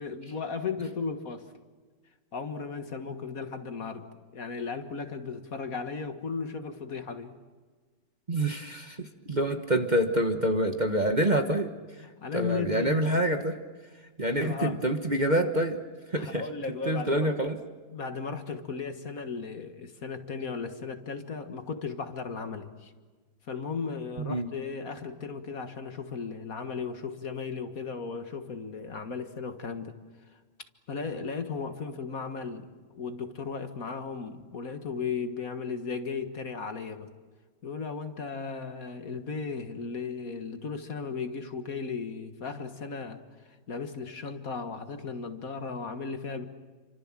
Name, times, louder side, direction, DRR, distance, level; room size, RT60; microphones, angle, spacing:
voice 1, 0.0-1.4 2.3-4.1 4.3-7.4 12.0-13.0 14.4-14.8 16.1-17.3 17.9-22.9 23.5-30.0 30.9-37.1 37.6-43.2 43.5-46.5, left 5 dB, 55° left, 7 dB, 1.9 m, -36 dB
voice 2, 8.3-11.7 12.3-13.6 14.2-15.8 16.1-16.4 16.8-17.6 24.2-24.5, right 1 dB, 30° right, 5 dB, 1.3 m, -26 dB
29.5 x 25.5 x 7.5 m, 1.4 s
omnidirectional pair, 1.9 m